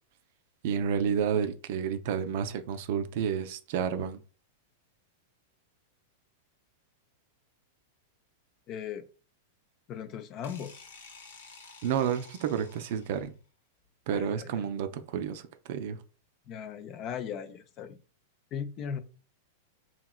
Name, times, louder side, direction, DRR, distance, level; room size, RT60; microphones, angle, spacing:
voice 1, 0.6-4.2 11.8-13.3 14.1-15.4 15.7-16.0, right 8 dB, 60° right, 0.4 m, -30 dB
voice 2, 8.7-9.1 9.9-10.8 14.1-14.7 16.5-18.0 18.5-19.0, left 8 dB, 40° left, 0.4 m, -38 dB
sound 1, 10.4-13.4, left 4 dB, 75° left, 0.7 m, -51 dB
2.9 x 2.8 x 2.3 m
hypercardioid pair, 105°, 0 cm